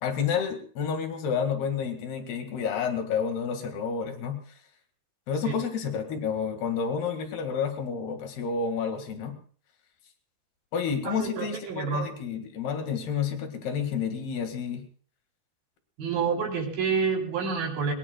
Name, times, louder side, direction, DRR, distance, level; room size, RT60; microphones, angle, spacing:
voice 1, 0.0-4.4 5.3-9.4 10.7-14.8, left 6 dB, 80° left, 6 dB, 4.0 m, -30 dB
voice 2, 11.1-12.1 16.0-17.9, right 5 dB, 65° right, 0 dB, 5.4 m, -28 dB
23.0 x 20.5 x 2.3 m, 0.43 s
omnidirectional pair, 4.5 m